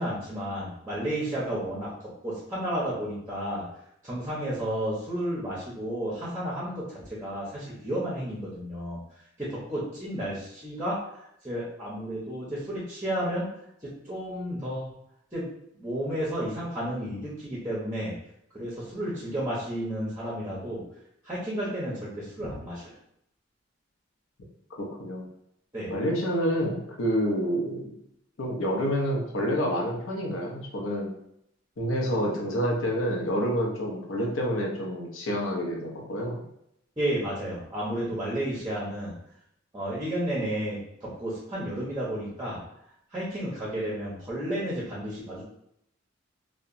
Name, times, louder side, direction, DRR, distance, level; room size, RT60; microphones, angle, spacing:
voice 1, 0.0-3.6 4.0-9.0 9.4-11.1 11.4-13.5 13.8-14.9 15.3-15.5 15.8-18.1 18.5-20.8 21.2-22.9 25.7-25.9 37.0-39.1 39.7-42.6 43.1-45.5, right 1 dB, 15° right, -6 dB, 0.6 m, -32 dB
voice 2, 24.8-25.2 25.9-27.9 28.4-31.1 31.8-36.5, equal, 85° left, -1 dB, 0.6 m, -28 dB
2.8 x 2.1 x 2.5 m, 0.75 s
head